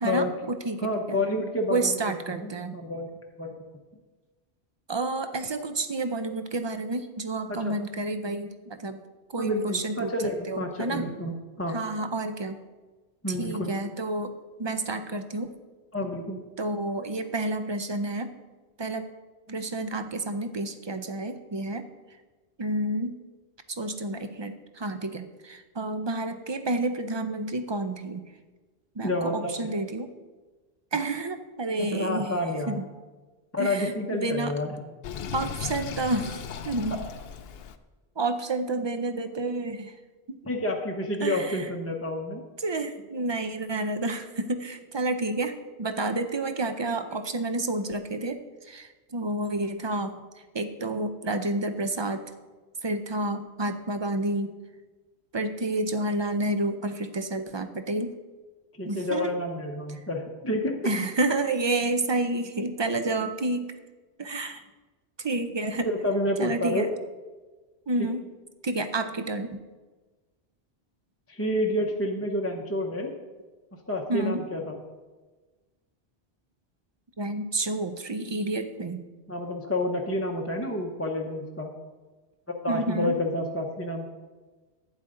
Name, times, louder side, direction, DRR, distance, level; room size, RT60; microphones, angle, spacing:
voice 1, 0.0-1.2 1.7-2.7 4.9-9.0 9.3-10.1 10.5-11.1 11.7-12.6 13.4-14.3 14.6-15.5 16.6-18.3 18.8-19.1 19.5-21.8 22.6-23.2 23.7-28.2 29.0-30.1 30.9-32.4 32.7-32.9 33.6-34.6 35.3-37.0 38.2-39.9 40.3-40.4 41.2-41.7 42.6-45.5 45.8-50.2 50.5-52.2 52.8-54.5 55.3-58.1 58.9-59.4 60.8-63.7 64.2-64.6 65.2-65.9 66.4-66.9 67.9-68.3 68.6-69.6 74.1-74.4 77.2-79.0 82.7-83.2, right 2 dB, 35° right, 9 dB, 0.5 m, -30 dB
voice 2, 0.8-2.0 2.3-3.1 3.4-3.6 7.5-7.7 9.4-11.8 13.2-13.7 15.9-16.4 29.0-29.7 31.8-32.8 33.5-34.7 40.4-42.4 58.8-60.8 65.8-66.9 68.0-68.1 71.3-73.1 73.7-74.8 79.3-81.7 82.6-84.1, left 1 dB, 15° left, 0 dB, 0.7 m, -29 dB
Sink (filling or washing), 35.0-37.8, left 7 dB, 70° left, 0.8 m, -36 dB
11.5 x 8.9 x 3.8 m, 1.3 s
omnidirectional pair, 1.1 m